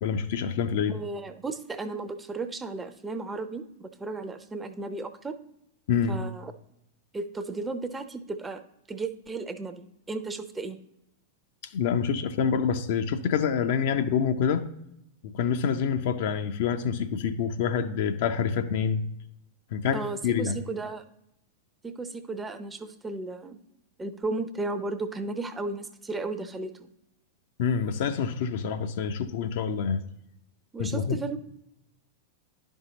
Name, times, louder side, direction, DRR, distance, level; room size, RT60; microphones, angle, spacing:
voice 1, 0.0-1.0 5.9-6.2 11.7-14.7 15.3-19.0 19.7-20.6 27.6-30.0 30.8-31.2, left 7 dB, 50° left, 8 dB, 0.5 m, -27 dB
voice 2, 0.9-5.4 6.1-6.5 7.1-8.6 8.9-10.8 19.9-21.0 21.8-23.6 24.0-26.9 30.7-31.4, right 3 dB, 15° right, 9 dB, 0.6 m, -34 dB
11.0 x 5.5 x 2.8 m, 0.82 s
figure-of-eight pair, 95°, 0 cm